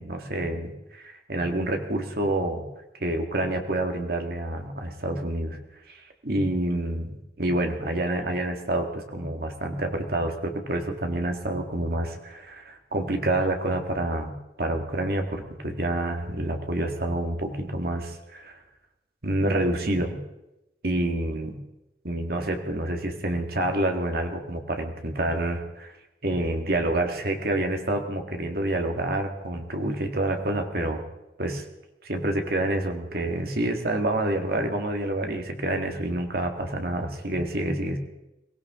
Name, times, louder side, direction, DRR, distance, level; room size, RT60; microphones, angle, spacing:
voice 1, 0.0-2.6 3.0-5.6 5.9-14.3 14.6-18.6 19.2-20.2 20.8-21.6 22.0-25.9 26.2-31.0 31.4-31.6 32.0-38.0, right 1 dB, 60° right, 4 dB, 1.9 m, -28 dB
22.5 x 16.5 x 3.7 m, 0.93 s
head